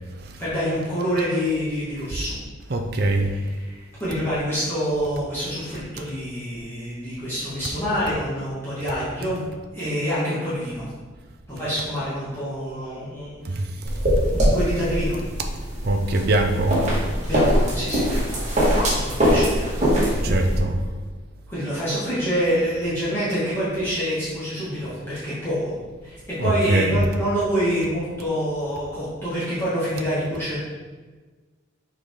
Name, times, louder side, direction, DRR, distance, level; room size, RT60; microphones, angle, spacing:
voice 1, 0.4-2.4 3.3-9.4 9.7-10.9 11.5-13.9 14.3-15.2 17.2-18.3 18.8-19.8 20.2-20.4 21.5-25.7 26.0-30.6, equal, 10° left, -12 dB, 1.8 m, -26 dB
voice 2, 2.7-3.3 13.4-13.8 15.8-16.8 20.2-20.8 26.4-27.0, right 2 dB, 50° right, 4 dB, 0.6 m, -22 dB
sound 1, 13.9-20.6, equal, 35° right, 1.9 m, -22 dB
6.3 x 5.0 x 3.9 m, 1.4 s
head